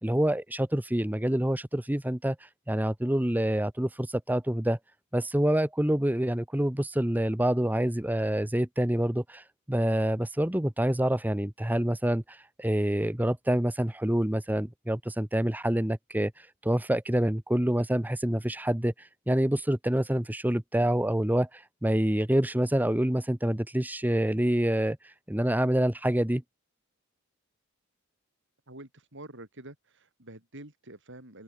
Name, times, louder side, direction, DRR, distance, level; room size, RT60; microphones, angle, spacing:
voice 1, 0.0-2.4 2.7-4.8 5.1-16.3 16.6-18.9 19.3-25.0 25.3-26.4, right 1 dB, 10° right, 0.9 m, -27 dB
voice 2, 28.7-31.4, right 1 dB, 60° right, 7.0 m, -47 dB
open air
head